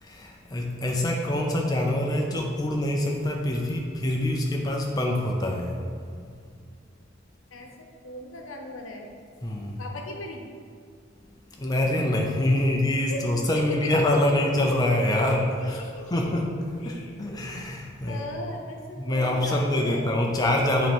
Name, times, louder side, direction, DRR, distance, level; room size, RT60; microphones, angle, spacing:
voice 1, 0.0-5.8 9.4-9.8 11.5-15.8 16.1-16.6 16.8-18.3 19.0-20.9, left 1 dB, 20° left, 0 dB, 0.4 m, -25 dB
voice 2, 8.0-9.0 9.8-10.4 13.1-13.2 13.8-13.9 15.3-15.4 15.7-16.4 16.8-17.1 18.1-20.1, left 2 dB, 85° left, 2 dB, 0.8 m, -38 dB
7.7 x 3.0 x 4.4 m, 2.1 s
head